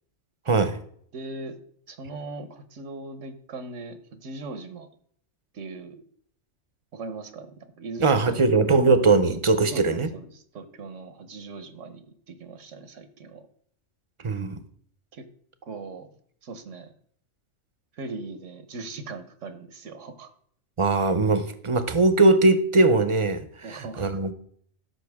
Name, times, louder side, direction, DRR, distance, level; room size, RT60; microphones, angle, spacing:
voice 1, 0.5-0.8 8.0-10.1 14.2-14.6 20.8-23.4 23.7-24.3, right 3 dB, 30° right, 11 dB, 0.6 m, -20 dB
voice 2, 1.1-1.6 1.9-4.9 5.5-6.0 6.9-8.5 9.7-13.5 15.1-15.3 15.6-16.1 16.4-16.9 17.9-20.3 23.6-24.1, right 3 dB, 85° right, 10 dB, 1.4 m, -39 dB
13.0 x 5.8 x 3.5 m, 0.62 s
omnidirectional pair, 1.2 m